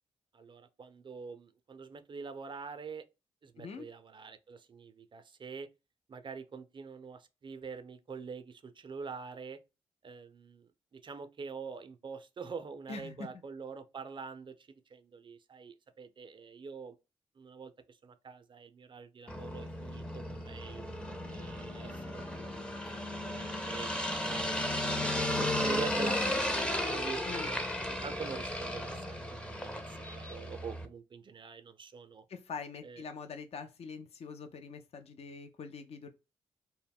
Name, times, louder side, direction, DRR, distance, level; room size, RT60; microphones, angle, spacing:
voice 1, 0.3-3.0 3.4-5.7 6.1-9.6 10.0-17.0 17.4-20.8 21.3-22.6 23.2-24.9 25.3-32.3 32.8-33.0, right 5 dB, 40° right, 0.5 m, -45 dB
voice 2, 12.9-13.3 27.3-27.5 32.3-36.1, left 5 dB, 50° left, 0.5 m, -44 dB
sound 1, 19.3-30.9, left 1 dB, 5° left, 0.6 m, -34 dB
2.1 x 2.0 x 3.4 m
supercardioid pair, 45°, 13 cm